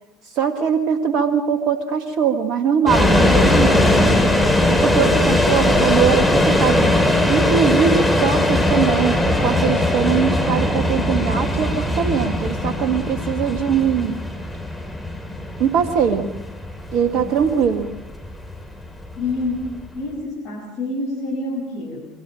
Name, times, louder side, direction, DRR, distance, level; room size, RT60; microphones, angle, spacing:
voice 1, 0.3-4.2 4.7-6.8 7.3-14.2 15.6-16.3 16.9-18.0, right 7 dB, 60° right, 7 dB, 1.6 m, -21 dB
sound 1, 2.9-19.9, left 1 dB, 5° left, 6.9 m, -19 dB
voice 2, 17.1-17.5 19.2-19.7 19.9-22.0, left 2 dB, 60° left, -2 dB, 7.0 m, -28 dB
26.0 x 24.0 x 6.4 m, 0.93 s
hypercardioid pair, 65°, 0 cm